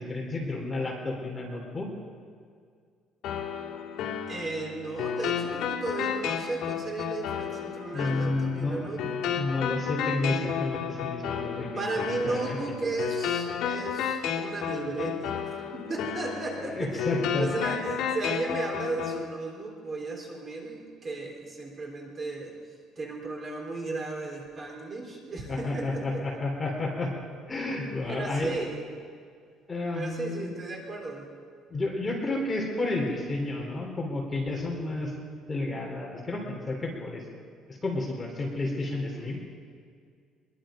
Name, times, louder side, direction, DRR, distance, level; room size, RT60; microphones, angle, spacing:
voice 1, 0.0-1.9 7.9-8.8 9.4-12.9 16.6-17.7 25.5-27.1 27.5-28.5 29.7-30.5 31.7-35.1 35.5-37.2 37.7-39.4, left 2 dB, 15° left, -1 dB, 3.4 m, -31 dB
sound 1, 3.2-19.2, left 8 dB, 70° left, 2.4 m, -32 dB
voice 2, 4.3-9.2 11.8-22.5 23.0-26.2 28.0-28.8 29.9-31.3, right 3 dB, 25° right, 0 dB, 3.4 m, -35 dB
23.0 x 22.5 x 5.1 m, 2.1 s
cardioid pair, 175°, 0 cm